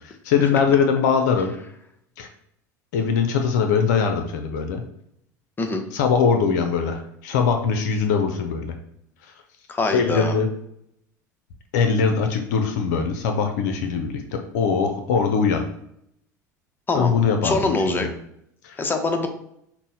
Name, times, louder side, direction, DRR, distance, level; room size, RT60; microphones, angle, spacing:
voice 1, 0.2-1.5 2.2-2.3 2.9-4.8 5.9-8.8 9.9-10.5 11.7-15.6 16.9-18.1 18.6-18.8, left 6 dB, 70° left, 6 dB, 0.5 m, -21 dB
voice 2, 9.7-10.4 16.9-17.2 17.4-18.1 18.8-19.3, left 2 dB, 20° left, 5 dB, 0.7 m, -24 dB
5.9 x 2.1 x 2.7 m, 0.73 s
hypercardioid pair, 80°, 10 cm